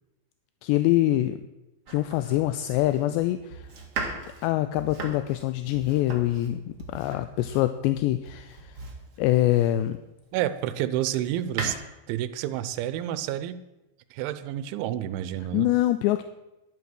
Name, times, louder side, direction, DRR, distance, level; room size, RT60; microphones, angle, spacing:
voice 1, 0.6-1.4 1.9-3.6 4.4-8.8 9.2-10.0 15.5-16.2, left 15 dB, 80° left, 11 dB, 2.6 m, -24 dB
Domestic sounds home sounds, 1.9-10.0 10.6-11.7, right 4 dB, 50° right, 1.6 m, -39 dB
voice 2, 10.3-11.8 12.1-13.6 14.1-15.7, right 12 dB, 90° right, 13 dB, 3.1 m, -29 dB
11.5 x 11.0 x 6.3 m, 0.97 s
omnidirectional pair, 5.3 m